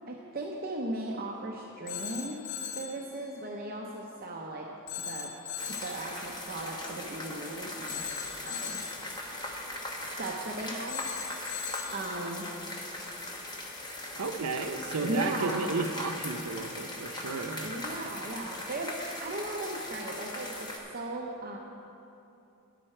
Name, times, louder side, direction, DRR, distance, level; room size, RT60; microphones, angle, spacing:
voice 1, 0.1-2.4 2.7-4.7 5.0-5.3 5.8-8.0 8.4-8.8 10.0-11.0 11.9-12.5 15.0-15.7 17.6-20.7 20.9-21.6, right 1 dB, 40° right, -1 dB, 0.7 m, -37 dB
Telephone, 1.9-3.0 4.9-6.0 7.9-9.0 10.9-12.0, left 7 dB, 75° left, 1.1 m, -38 dB
sound 1, 5.6-20.8, left 1 dB, 20° left, 1.0 m, -39 dB
voice 2, 14.2-17.7, right 4 dB, 90° right, 7 dB, 0.6 m, -33 dB
11.0 x 9.6 x 4.4 m, 2.7 s
head